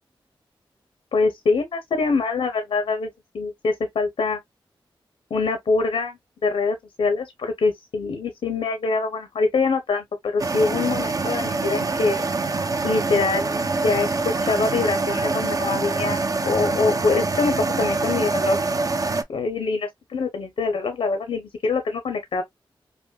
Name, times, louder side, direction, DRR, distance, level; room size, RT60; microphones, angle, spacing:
voice 1, 1.1-3.1 3.3-4.4 5.3-12.2 12.8-18.6 19.3-22.4, left 4 dB, 85° left, 0.7 m, -24 dB
sound 1, 10.4-19.2, right 3 dB, 40° right, 0.6 m, -25 dB
5.0 x 2.1 x 2.2 m
cardioid pair, 70°, 9 cm